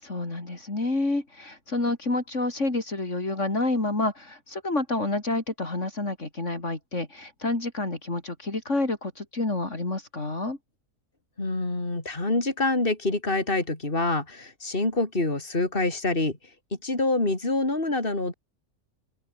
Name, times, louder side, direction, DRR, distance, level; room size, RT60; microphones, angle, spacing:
voice 1, 0.0-10.6, left 2 dB, 55° left, 4.6 m, -29 dB
voice 2, 11.4-16.4 16.8-18.3, left 2 dB, 40° left, 4.6 m, -26 dB
open air
omnidirectional pair, 1.5 m